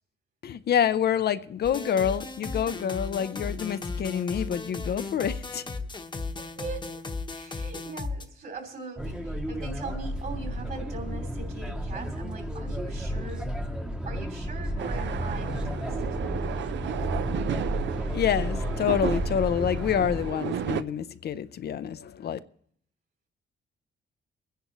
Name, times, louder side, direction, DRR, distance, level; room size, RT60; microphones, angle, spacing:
voice 1, 0.4-5.6 18.1-22.4, left 9 dB, 55° left, 0.5 m, -27 dB
sound 1, 1.6-8.3, left 3 dB, 25° left, 1.0 m, -35 dB
voice 2, 6.4-7.0 7.3-13.6 14.0-17.1, right 4 dB, 50° right, 3.2 m, -41 dB
sound 2, 9.0-20.3, equal, 5° right, 1.0 m, -32 dB
sound 3, 14.8-20.8, right 9 dB, 70° right, 0.6 m, -33 dB
23.5 x 10.0 x 3.1 m
cardioid pair, 110°, 20 cm